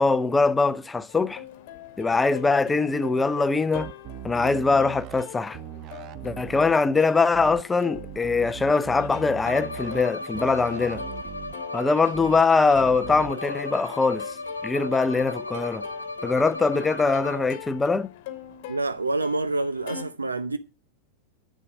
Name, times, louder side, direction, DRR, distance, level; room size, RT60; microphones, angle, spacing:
voice 1, 0.0-1.4 2.0-3.9 4.2-5.6 6.2-11.0 11.7-14.2 14.6-15.8 16.2-18.1, left 4 dB, 10° left, 0.6 m, -22 dB
Plucked string instrument, 1.1-20.0, left 11 dB, 50° left, 1.2 m, -43 dB
sound 1, 3.7-5.2 5.5-6.7 7.3-7.6 7.9-10.0 10.3-11.5 12.1-12.4 12.7-13.3, right 16 dB, 35° right, 0.4 m, -40 dB
Bowed string instrument, 9.5-17.7, left 2 dB, 80° left, 1.0 m, -36 dB
voice 2, 18.7-20.6, right 2 dB, 80° right, 0.6 m, -27 dB
8.5 x 7.0 x 6.2 m
figure-of-eight pair, 90°, 0 cm